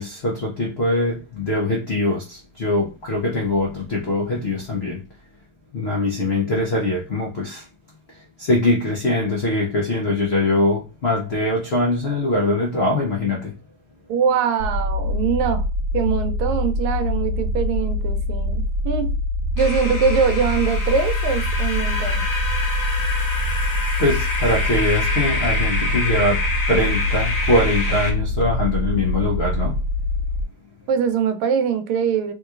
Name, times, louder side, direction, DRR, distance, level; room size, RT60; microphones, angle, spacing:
voice 1, 0.0-5.0 5.7-7.6 8.4-13.5 24.0-26.4 26.7-29.7, left 2 dB, 80° left, 0.5 m, -22 dB
voice 2, 14.1-15.7 15.9-19.2 19.6-22.3 30.9-32.3, right 7 dB, 90° right, 1.5 m, -22 dB
sound 1, 14.6-30.4, left 1 dB, 25° right, 1.6 m, -24 dB
sound 2, 19.6-28.1, left 2 dB, 40° left, 1.2 m, -27 dB
3.6 x 3.0 x 2.3 m
omnidirectional pair, 2.3 m